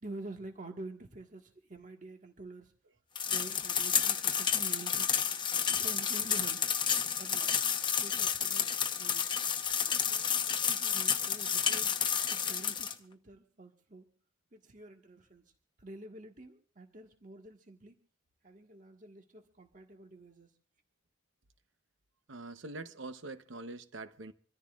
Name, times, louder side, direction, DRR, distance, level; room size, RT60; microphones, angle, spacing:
voice 1, 0.0-2.7 3.3-5.1 5.7-6.6 7.2-7.6 8.0-8.7 9.0-9.3 10.1-11.9 12.3-14.1 14.5-15.4 15.8-17.9 18.4-20.5, right 2 dB, 40° right, 1.5 m, -48 dB
sound 1, 3.2-12.9, left 7 dB, 25° left, 0.8 m, -30 dB
voice 2, 22.3-24.3, right 2 dB, 70° right, 0.9 m, -44 dB
26.5 x 14.0 x 2.4 m
head